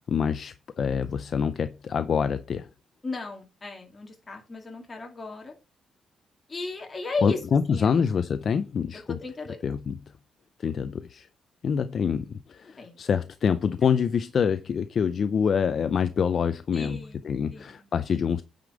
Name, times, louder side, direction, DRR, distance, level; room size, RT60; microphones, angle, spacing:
voice 1, 0.1-2.7 7.2-9.2 9.6-10.0 10.6-11.3 11.6-17.0 17.2-18.4, left 6 dB, 45° left, 0.5 m, -26 dB
voice 2, 3.0-5.5 6.5-7.4 7.7-7.9 9.1-9.6 12.6-13.0 16.7-17.9, left 3 dB, 20° left, 2.4 m, -35 dB
9.5 x 5.0 x 5.1 m
cardioid pair, 145°, 0 cm